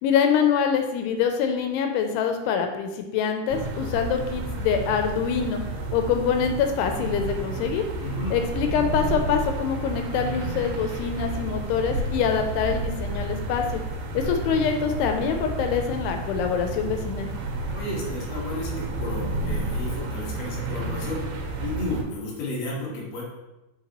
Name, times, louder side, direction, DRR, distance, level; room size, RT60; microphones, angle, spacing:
voice 1, 0.0-5.6 5.9-7.8 8.3-13.8 14.1-17.3, left 7 dB, 85° left, 5 dB, 2.6 m, -25 dB
sound 1, 3.5-22.0, right 2 dB, 90° right, 2.9 m, -31 dB
voice 2, 8.0-8.3 14.4-14.6 17.7-21.2 21.6-23.2, left 2 dB, 50° left, -5 dB, 2.2 m, -32 dB
5.8 x 5.6 x 3.0 m, 0.99 s
omnidirectional pair, 4.6 m